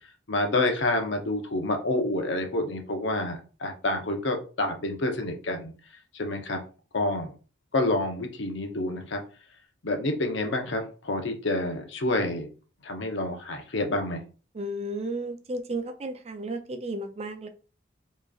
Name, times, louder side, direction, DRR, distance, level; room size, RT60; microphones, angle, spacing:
voice 1, 0.3-5.7 6.1-6.6 6.9-7.3 7.7-9.2 9.8-12.5 12.8-14.2, left 2 dB, 75° left, 4 dB, 0.8 m, -28 dB
voice 2, 14.5-17.5, right 1 dB, 35° right, 8 dB, 0.5 m, -33 dB
4.9 x 3.0 x 2.4 m, 0.36 s
head